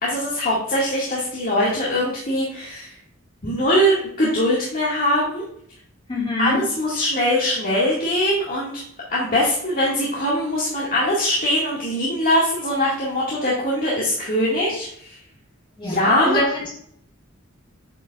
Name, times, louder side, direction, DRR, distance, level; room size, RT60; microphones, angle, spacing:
voice 1, 0.0-2.9 3.4-5.5 6.4-8.8 9.1-15.2 15.8-16.4, equal, 45° left, -7 dB, 2.0 m, -22 dB
voice 2, 6.1-6.6 15.8-16.8, left 1 dB, 25° left, -5 dB, 2.8 m, -25 dB
8.7 x 5.3 x 2.4 m, 0.67 s
head